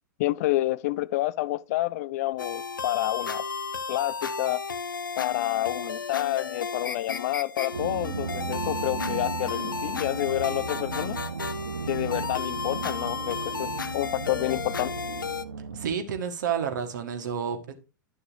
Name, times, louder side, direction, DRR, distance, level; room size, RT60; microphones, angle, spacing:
voice 1, 0.2-3.5 3.9-4.6 5.2-11.2 11.9-14.9, left 17 dB, 50° left, 0.5 m, -29 dB
sound 1, 2.4-15.4, left 5 dB, 80° left, 0.8 m, -34 dB
sound 2, 7.7-15.9, right 6 dB, 80° right, 0.7 m, -35 dB
voice 2, 15.7-17.7, right 7 dB, 65° right, 1.6 m, -30 dB
11.5 x 6.3 x 2.7 m
figure-of-eight pair, 100°, 11 cm